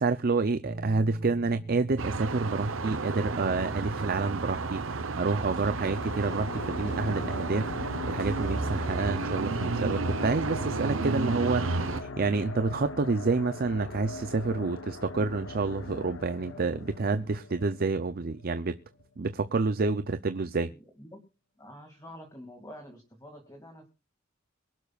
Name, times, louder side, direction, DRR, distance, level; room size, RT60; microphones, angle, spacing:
voice 1, 0.0-18.8 19.2-20.7, right 3 dB, 50° right, 0.6 m, -29 dB
sound 1, 0.6-7.9, right 2 dB, 20° right, 1.7 m, -44 dB
sound 2, 2.0-12.0, right 3 dB, 90° right, 0.9 m, -32 dB
sound 3, 5.5-18.6 18.9-19.0, left 2 dB, 80° left, 1.0 m, -40 dB
voice 2, 20.7-21.2 21.6-23.9, equal, 20° left, 2.4 m, -47 dB
23.5 x 12.0 x 2.4 m
head